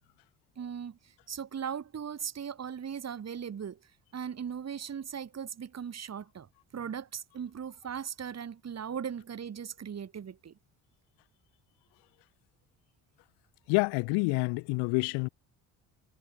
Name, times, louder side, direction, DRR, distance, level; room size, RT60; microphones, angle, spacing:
voice 1, 0.6-3.8 4.1-6.5 6.7-10.5, right 8 dB, 40° right, 2.2 m, -38 dB
voice 2, 13.7-15.3, left 29 dB, 80° left, 1.3 m, -28 dB
hypercardioid pair, 60°, 39 cm